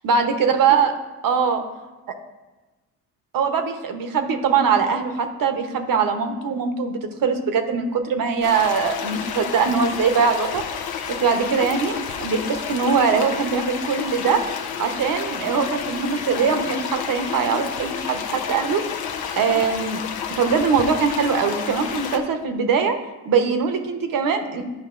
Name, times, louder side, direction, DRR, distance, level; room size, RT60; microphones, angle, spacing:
voice 1, 0.0-0.9 1.2-1.6 3.3-10.6 11.1-14.4 14.8-18.8 19.4-20.0 20.3-23.0 23.2-24.6, right 5 dB, 55° right, 6 dB, 0.9 m, -22 dB
sound 1, 8.4-22.2, left 7 dB, 65° left, 0.8 m, -30 dB
10.5 x 5.2 x 2.5 m, 1.2 s
supercardioid pair, 75°, 40 cm